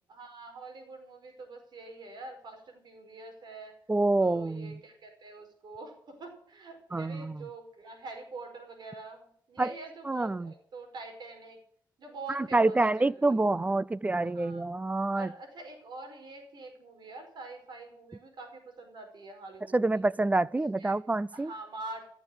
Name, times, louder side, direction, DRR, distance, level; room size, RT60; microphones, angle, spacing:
voice 1, 0.1-3.8 4.2-11.6 12.0-13.4 14.2-14.7 15.1-20.0 20.5-21.0 21.3-22.1, right 3 dB, 70° right, 4.9 m, -45 dB
voice 2, 3.9-4.8 6.9-7.5 9.6-9.7 10.1-10.5 12.3-15.3 19.7-21.5, right 2 dB, 20° right, 0.5 m, -27 dB
15.0 x 7.3 x 8.6 m
cardioid pair, 70°, 8 cm